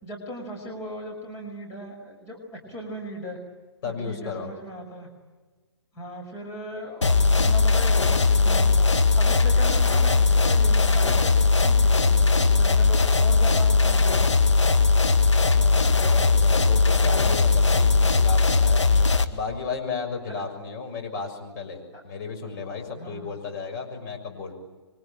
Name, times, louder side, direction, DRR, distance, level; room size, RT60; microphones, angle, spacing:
voice 1, 0.0-3.4 3.8-5.1 5.9-8.9 9.2-14.2 20.3-20.4 21.9-22.0 22.9-23.3, equal, 20° left, 0 dB, 5.7 m, -38 dB
voice 2, 3.8-4.5 15.5-18.9 19.3-24.5, left 5 dB, 45° left, 3 dB, 6.5 m, -34 dB
sound 1, 7.0-19.3, left 3 dB, 90° left, 1.9 m, -19 dB
27.5 x 24.0 x 9.0 m, 1.3 s
hypercardioid pair, 135°, 15 cm